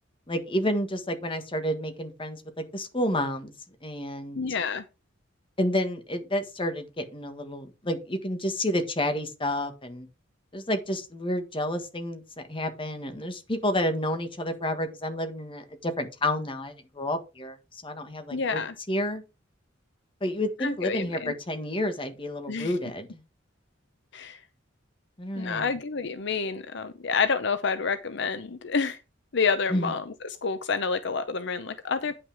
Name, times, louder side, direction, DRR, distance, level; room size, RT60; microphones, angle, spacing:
voice 1, 0.3-3.5 3.8-4.4 5.6-10.1 10.5-19.2 20.2-23.2 25.2-25.7 29.7-29.9, left 1 dB, 25° left, 1.6 m, -30 dB
voice 2, 4.4-4.8 18.3-18.7 20.6-21.3 22.5-22.7 24.1-24.4 25.4-29.0 29.3-30.0 30.4-32.2, left 5 dB, 65° left, 0.7 m, -28 dB
9.6 x 6.0 x 4.7 m
head